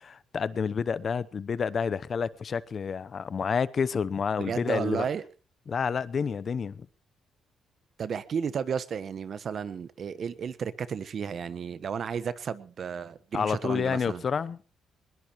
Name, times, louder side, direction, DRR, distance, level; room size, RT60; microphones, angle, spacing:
voice 1, 0.0-5.0 5.7-6.9 13.3-14.6, left 6 dB, 45° left, 0.8 m, -29 dB
voice 2, 4.4-5.2 8.0-14.2, right 7 dB, 55° right, 1.3 m, -33 dB
21.0 x 20.5 x 3.1 m
cardioid pair, 90°, 0 cm